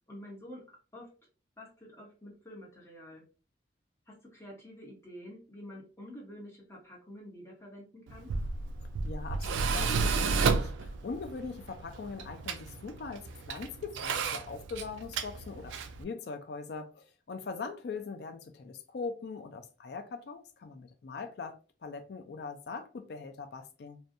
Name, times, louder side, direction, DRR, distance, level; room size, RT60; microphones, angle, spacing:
voice 1, 0.1-1.1 1.6-3.2 4.1-8.3, equal, 15° left, 0.9 m, -48 dB
Tools, 8.1-16.0, right 4 dB, 85° right, 0.3 m, -32 dB
voice 2, 8.8-24.0, left 4 dB, 60° left, 0.4 m, -41 dB
2.6 x 2.2 x 2.5 m
head